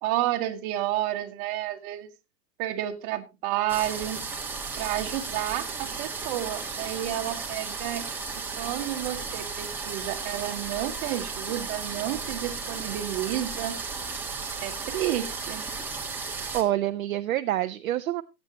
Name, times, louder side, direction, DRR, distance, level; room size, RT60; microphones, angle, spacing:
voice 1, 0.0-2.1 2.6-4.2 4.8-8.0 8.6-13.8 14.6-15.7, right 13 dB, 30° right, 5 dB, 1.4 m, -30 dB
sound 1, 3.7-16.6, right 4 dB, 5° right, 1.4 m, -34 dB
voice 2, 16.2-18.2, right 13 dB, 55° right, 9 dB, 0.7 m, -27 dB
18.5 x 8.3 x 2.9 m, 0.25 s
hypercardioid pair, 135°, 49 cm